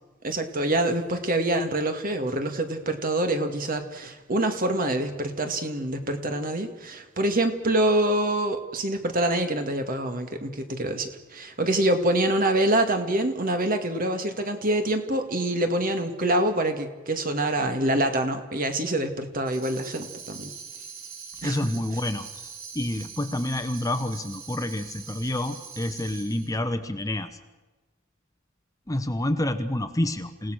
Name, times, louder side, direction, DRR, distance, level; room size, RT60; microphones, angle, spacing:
voice 1, 0.2-20.5 21.4-21.7, right 1 dB, 45° right, 6 dB, 2.3 m, -26 dB
Tambourine, 19.5-26.5, right 6 dB, 80° right, 3.1 m, -43 dB
voice 2, 21.4-27.4 28.9-30.5, left 1 dB, 15° left, 9 dB, 1.1 m, -28 dB
28.0 x 17.5 x 6.5 m, 1.2 s
head